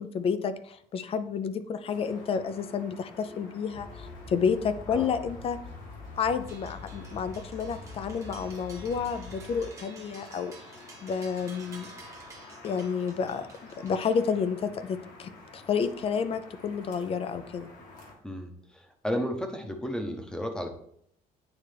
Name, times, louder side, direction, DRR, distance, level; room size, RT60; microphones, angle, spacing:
voice 1, 0.0-5.6 6.2-10.5 11.0-11.9 12.6-17.7, left 6 dB, 40° left, 12 dB, 0.5 m, -30 dB
sound 1, 1.9-18.1, left 2 dB, 60° left, 1.6 m, -50 dB
sound 2, 3.7-9.7, left 4 dB, 85° left, 2.8 m, -45 dB
sound 3, 6.5-14.6, right 3 dB, 20° right, 1.0 m, -51 dB
voice 2, 18.2-20.7, equal, 5° left, 4 dB, 0.8 m, -33 dB
9.2 x 3.3 x 3.3 m, 0.67 s
cardioid pair, 135°, 15 cm